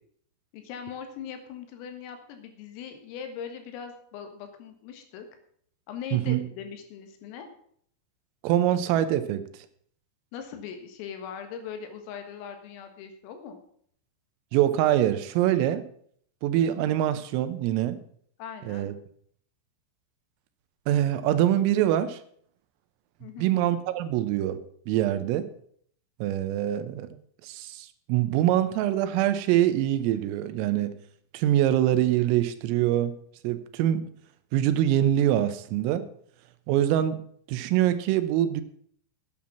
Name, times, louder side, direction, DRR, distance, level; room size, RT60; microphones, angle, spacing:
voice 1, 0.5-5.3 5.9-7.5 10.3-13.6 18.4-18.9 23.2-23.5, left 7 dB, 80° left, 6 dB, 4.2 m, -40 dB
voice 2, 6.1-6.4 8.4-9.4 14.5-15.9 16.4-18.0 18.7-18.9 20.9-22.2 23.4-24.6 24.9-25.5 26.2-27.2 27.4-30.9 31.3-33.2 33.4-34.0 34.5-36.1 36.7-37.2 37.5-38.6, right 12 dB, 85° right, 12 dB, 3.5 m, -24 dB
9.6 x 8.9 x 7.1 m, 0.62 s
omnidirectional pair, 5.9 m